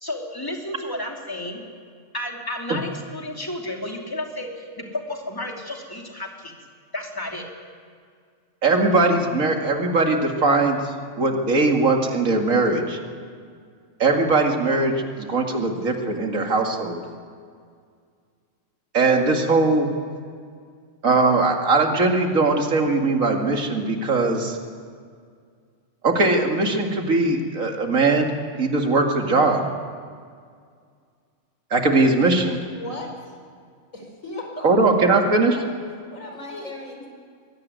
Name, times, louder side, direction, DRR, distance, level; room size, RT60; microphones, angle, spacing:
voice 1, 0.0-1.6 2.1-6.5 6.9-7.5, left 1 dB, 15° left, 1 dB, 2.8 m, -32 dB
voice 2, 8.6-13.0 14.0-17.0 18.9-19.9 21.0-24.6 26.0-28.3 28.6-29.6 31.7-32.6 34.6-35.6, right 3 dB, 85° right, 3 dB, 2.6 m, -20 dB
voice 3, 32.7-33.1 33.9-34.9 35.2-35.6 36.1-37.1, left 1 dB, 75° left, 1 dB, 4.9 m, -36 dB
23.0 x 17.0 x 9.4 m, 2.1 s
omnidirectional pair, 1.4 m